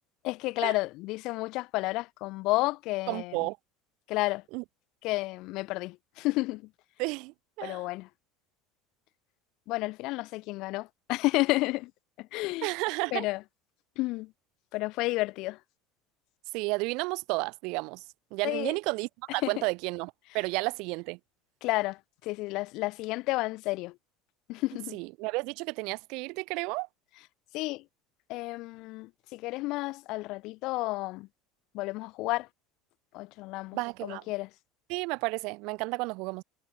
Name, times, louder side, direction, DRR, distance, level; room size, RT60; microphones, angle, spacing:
voice 1, 0.2-3.4 4.1-4.4 5.0-6.6 7.6-8.1 9.7-11.9 12.2-12.7 13.1-13.4 14.0-14.3 14.7-15.6 18.4-18.7 19.4-19.5 21.6-23.9 24.5-25.0 27.5-27.8 28.3-31.3 31.7-32.5 33.1-34.5, left 21 dB, 60° left, 3.2 m, -31 dB
voice 2, 3.1-3.6 4.5-4.6 7.0-7.9 12.6-13.3 16.5-18.0 18.3-21.2 24.9-26.9 33.7-34.2 34.9-36.4, right 27 dB, 70° right, 1.0 m, -32 dB
supercardioid pair, 115°, 0 cm